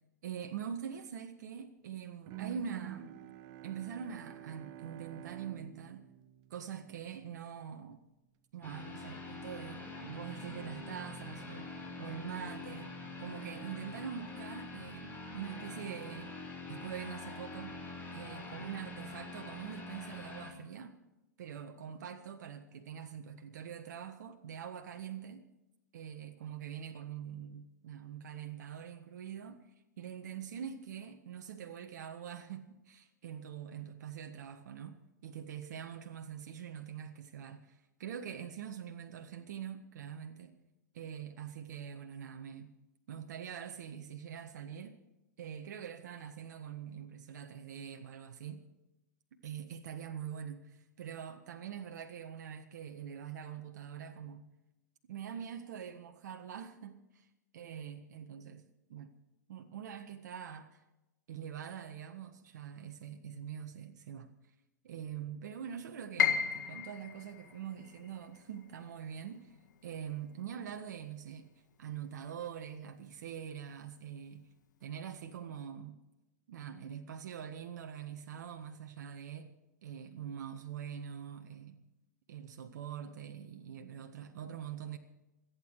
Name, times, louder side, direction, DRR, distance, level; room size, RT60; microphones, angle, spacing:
voice 1, 0.2-3.2 3.6-6.0 6.5-8.0 8.5-11.7 12.0-12.9 13.2-16.3 16.7-17.8 18.1-21.0 21.4-25.4 25.9-29.6 30.0-40.5 40.9-42.7 43.1-45.0 45.4-48.6 49.4-54.5 55.1-57.3 57.5-58.6 58.9-59.1 59.5-60.8 61.3-64.3 64.8-69.5 69.8-71.5 71.8-74.5 74.8-76.0 76.5-79.5 79.8-81.8 82.3-85.0, right 8 dB, 65° right, 1.5 m, -44 dB
Bowed string instrument, 2.3-7.3, right 14 dB, 45° right, 1.2 m, -49 dB
sound 1, 8.6-20.5, left 2 dB, 20° left, 5.2 m, -45 dB
Piano, 66.2-72.1 72.5-73.6 74.0-74.1 74.8-75.2, left 7 dB, 75° left, 1.7 m, -37 dB
27.5 x 9.6 x 4.8 m
hypercardioid pair, 105°, 10 cm